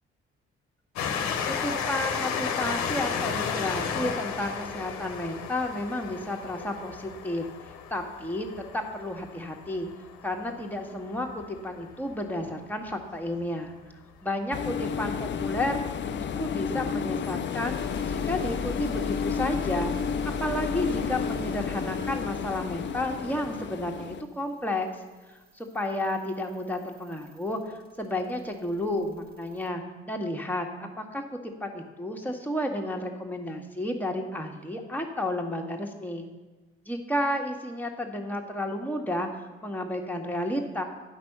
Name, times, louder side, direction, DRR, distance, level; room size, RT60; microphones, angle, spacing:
Train, 1.0-12.1 12.9-13.0 13.2-13.3, left 6 dB, 60° left, 1.0 m, -33 dB
voice 1, 1.5-7.5 7.9-8.5 8.7-9.9 10.2-13.7 14.2-15.8 16.1-17.8 18.1-19.9 20.4-24.9 25.5-36.3 36.9-39.3 39.6-40.8, left 1 dB, 5° left, 2 dB, 1.6 m, -32 dB
sound 1, 14.5-24.2, left 7 dB, 35° left, 0.6 m, -31 dB
sound 2, 17.6-29.7, left 2 dB, 60° right, 1.7 m, -42 dB
9.9 x 6.0 x 7.1 m, 1.2 s
figure-of-eight pair, 40°, 31 cm